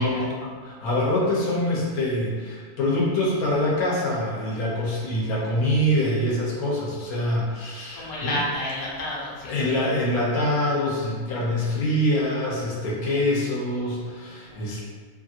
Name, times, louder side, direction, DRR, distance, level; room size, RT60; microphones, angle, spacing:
voice 1, 0.0-8.4 9.4-14.8, left 1 dB, 90° left, -5 dB, 1.2 m, -25 dB
voice 2, 7.9-9.5 14.5-14.8, left 1 dB, 65° left, -5 dB, 1.1 m, -30 dB
3.0 x 2.4 x 2.7 m, 1.5 s
omnidirectional pair, 1.5 m